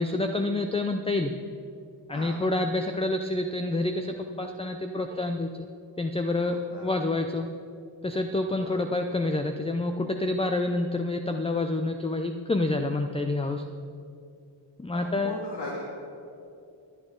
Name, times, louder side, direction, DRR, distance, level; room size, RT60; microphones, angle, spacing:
voice 1, 0.0-1.3 2.1-5.5 6.0-6.6 6.8-7.5 8.0-13.6 14.8-15.4, left 2 dB, 15° left, 6 dB, 0.5 m, -28 dB
voice 2, 14.9-15.8, left 2 dB, 60° left, -6 dB, 2.8 m, -38 dB
21.5 x 8.8 x 3.8 m, 2.6 s
cardioid pair, 85°, 48 cm